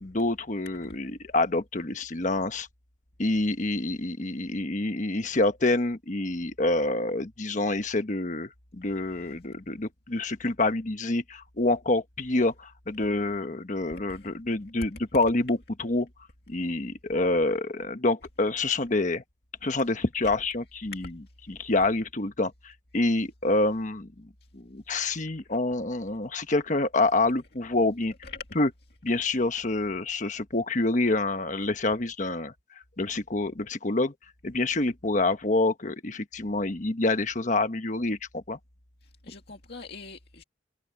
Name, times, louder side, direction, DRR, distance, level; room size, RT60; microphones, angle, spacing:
voice 1, 0.0-2.7 3.2-16.1 16.5-19.2 19.6-21.1 21.5-22.5 22.9-24.1 24.5-28.1 28.5-28.7 29.0-32.5 33.0-34.1 34.4-38.6, left 2 dB, 45° left, 1.3 m, -27 dB
voice 2, 13.9-14.3 20.2-20.3 25.5-25.6 28.2-28.4 39.2-40.4, left 4 dB, 60° left, 2.3 m, -43 dB
head